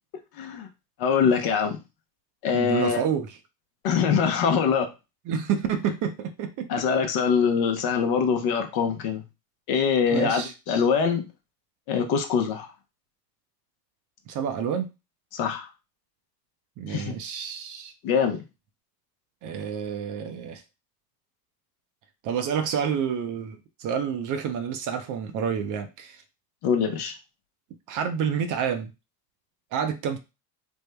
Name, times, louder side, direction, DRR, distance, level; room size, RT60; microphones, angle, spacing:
voice 1, 0.4-0.7 1.0-1.8 2.4-3.0 3.8-4.9 6.7-9.2 9.7-11.3 11.9-12.7 15.3-15.7 16.9-17.2 18.0-18.4 26.6-27.1, left 6 dB, 50° left, 0.8 m, -23 dB
voice 2, 2.5-3.4 5.3-6.7 10.1-10.5 14.3-14.9 16.8-17.9 19.4-20.6 22.2-26.2 27.9-28.9 29.7-30.2, right 7 dB, 40° right, 0.6 m, -29 dB
3.5 x 2.1 x 3.3 m
hypercardioid pair, 85°, 48 cm